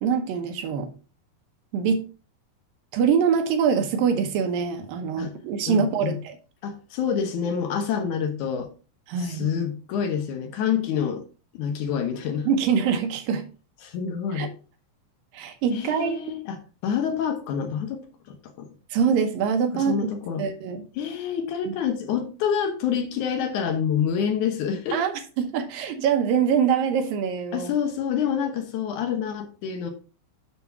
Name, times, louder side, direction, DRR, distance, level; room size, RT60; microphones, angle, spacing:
voice 1, 0.0-0.9 1.7-2.1 2.9-6.4 9.1-9.5 12.5-13.5 14.3-14.5 15.3-16.2 18.9-19.9 20.4-20.8 21.7-21.8 24.9-27.7, right 7 dB, 75° right, 2.4 m, -24 dB
voice 2, 5.7-6.2 6.6-8.7 9.2-11.2 11.5-12.5 13.8-14.5 15.7-18.0 18.3-18.7 19.7-20.5 21.0-25.0 27.5-29.9, left 7 dB, 70° left, 2.0 m, -27 dB
7.2 x 6.6 x 3.5 m
omnidirectional pair, 4.6 m